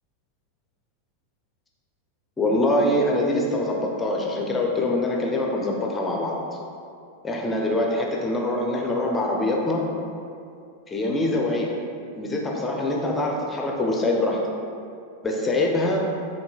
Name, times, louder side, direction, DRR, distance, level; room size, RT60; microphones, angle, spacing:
voice 1, 2.4-6.4 7.2-10.0 10.9-11.8 12.1-14.4 15.2-16.1, left 1 dB, 15° left, 0 dB, 0.5 m, -24 dB
6.8 x 2.6 x 2.3 m, 2.5 s
figure-of-eight pair, 90°, 0 cm